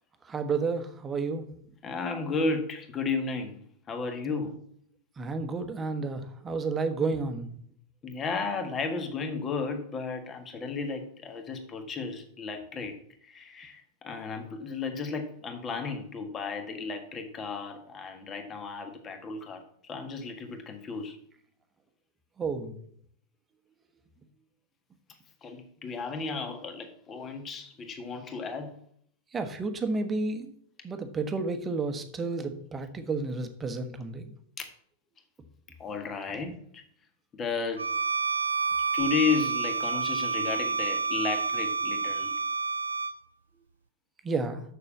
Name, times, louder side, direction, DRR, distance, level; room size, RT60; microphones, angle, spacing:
voice 1, 0.2-1.5 4.2-4.4 5.2-7.5 22.4-22.8 29.3-30.5 30.8-34.3 44.2-44.6, right 4 dB, 20° right, 8 dB, 1.3 m, -31 dB
voice 2, 1.8-3.6 3.9-4.6 8.0-13.0 13.2-21.2 25.4-28.7 34.6-34.7 35.8-36.8 37.3-37.9 38.9-42.3, left 4 dB, 25° left, 6 dB, 1.6 m, -33 dB
Bowed string instrument, 37.8-43.2, right 4 dB, 75° right, 0.4 m, -29 dB
6.9 x 6.7 x 7.2 m, 0.63 s
figure-of-eight pair, 90°, 0 cm